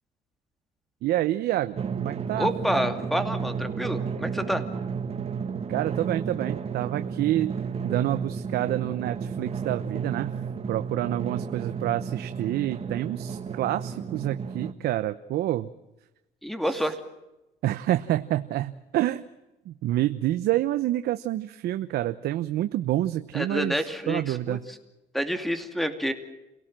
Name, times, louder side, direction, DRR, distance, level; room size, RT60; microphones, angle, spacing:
voice 1, 1.0-2.5 5.7-7.5 7.8-10.3 10.7-15.7 16.7-16.8 17.6-19.2 19.7-24.6, right 14 dB, 70° right, 10 dB, 0.9 m, -28 dB
Drum, 1.8-14.7, right 6 dB, 35° right, 1.5 m, -32 dB
voice 2, 2.4-4.6 16.4-16.9 23.3-24.6 25.1-26.1, equal, ahead, 8 dB, 2.5 m, -28 dB
29.0 x 17.5 x 7.6 m, 0.97 s
cardioid pair, 110°, 17 cm